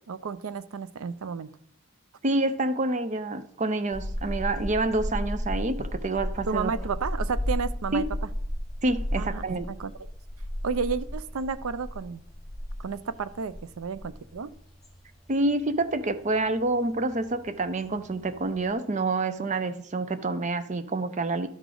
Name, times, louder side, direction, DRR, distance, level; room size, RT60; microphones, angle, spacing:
voice 1, 0.1-1.5 6.5-8.0 9.2-9.9 10.6-12.2 12.8-14.5, right 5 dB, 80° right, 0.5 m, -32 dB
voice 2, 2.2-6.7 7.9-8.1 8.8-9.7 15.3-21.5, right 2 dB, 35° right, 0.5 m, -27 dB
sound 1, 3.9-18.7, equal, ahead, 1.1 m, -34 dB
11.5 x 5.0 x 3.8 m
head